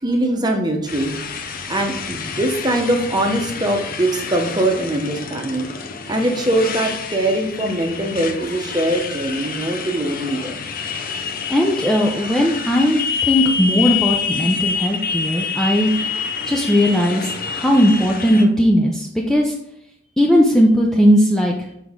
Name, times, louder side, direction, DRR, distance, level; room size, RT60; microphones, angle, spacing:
voice 1, 0.0-1.2 1.7-5.7 6.1-10.6, right 1 dB, 20° right, 3 dB, 0.9 m, -22 dB
Motorcycle, 0.9-18.4, left 6 dB, 45° left, 0.6 m, -27 dB
voice 2, 11.5-15.9 16.5-19.5 20.2-21.7, equal, ahead, -1 dB, 0.5 m, -17 dB
6.2 x 4.6 x 3.6 m, 0.79 s
head